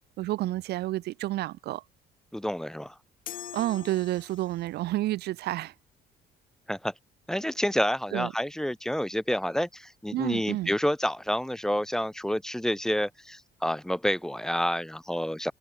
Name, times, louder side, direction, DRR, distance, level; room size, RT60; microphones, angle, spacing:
voice 1, 0.2-1.8 3.5-5.7 8.1-8.3 10.1-10.7, right 16 dB, 75° right, 1.6 m, -30 dB
voice 2, 2.3-3.0 6.7-6.9 7.3-15.5, equal, 5° left, 1.9 m, -29 dB
sound 1, 3.3-4.8, left 11 dB, 55° left, 1.9 m, -42 dB
cardioid pair, 110°, 17 cm